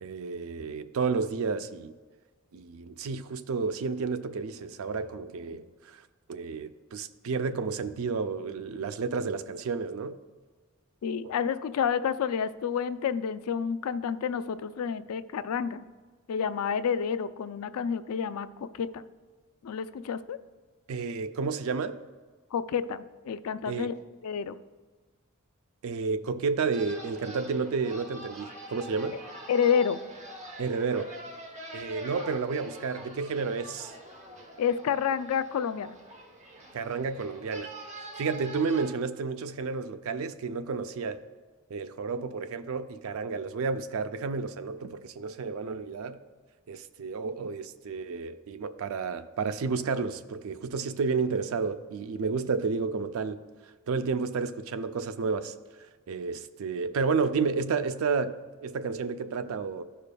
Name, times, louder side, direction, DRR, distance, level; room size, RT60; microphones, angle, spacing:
voice 1, 0.0-1.9 2.5-6.0 6.3-10.2 20.9-22.0 23.7-23.9 25.8-29.2 30.6-31.1 31.7-33.9 36.7-37.7 38.2-41.2 41.7-46.2 46.7-53.4 53.9-59.8, right 4 dB, 70° right, 0.4 m, -31 dB
voice 2, 11.0-15.8 16.3-19.0 19.6-20.4 22.5-23.9 24.2-24.6 29.5-30.0 34.6-36.0, left 7 dB, 75° left, 0.3 m, -29 dB
sound 1, 26.7-38.9, right 1 dB, 30° right, 0.9 m, -45 dB
13.0 x 5.1 x 2.2 m
head